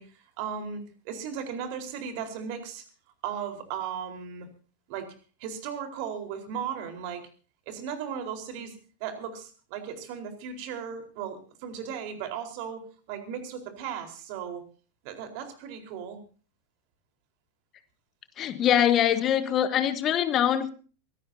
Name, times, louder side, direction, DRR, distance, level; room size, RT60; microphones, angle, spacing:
voice 1, 0.0-2.9 3.2-4.5 4.9-5.1 5.4-7.3 7.7-12.8 13.1-14.6 15.0-16.2, right 7 dB, 45° right, 6 dB, 4.3 m, -36 dB
voice 2, 18.4-20.7, left 10 dB, 30° left, 13 dB, 1.3 m, -23 dB
23.5 x 18.0 x 2.8 m, 0.39 s
figure-of-eight pair, 90°, 0 cm